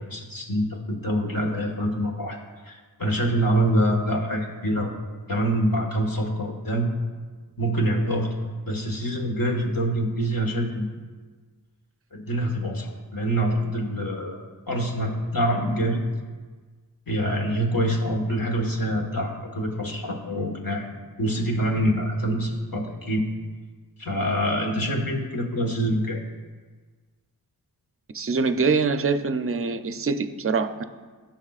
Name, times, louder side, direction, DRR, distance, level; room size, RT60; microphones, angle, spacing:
voice 1, 0.0-2.4 2.6-4.9 5.3-6.9 7.6-8.3 8.7-10.9 12.1-16.0 17.1-20.9 21.2-23.2 24.0-26.2, right 1 dB, 60° left, 0 dB, 1.6 m, -25 dB
voice 2, 28.1-30.8, right 4 dB, 35° right, 9 dB, 0.5 m, -24 dB
15.5 x 5.9 x 2.4 m, 1.4 s
wide cardioid pair, 55°, 39 cm